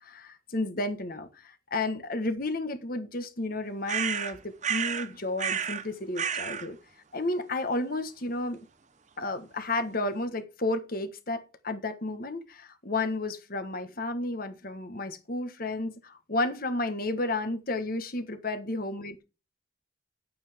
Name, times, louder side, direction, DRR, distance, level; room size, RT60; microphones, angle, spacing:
voice 1, 0.0-6.8 7.1-8.6 9.2-19.3, left 2 dB, 50° left, 1.4 m, -32 dB
sound 1, 3.9-5.1 5.4-5.9 6.2-6.7, right 8 dB, 40° right, 0.7 m, -30 dB
10.0 x 8.6 x 3.6 m
head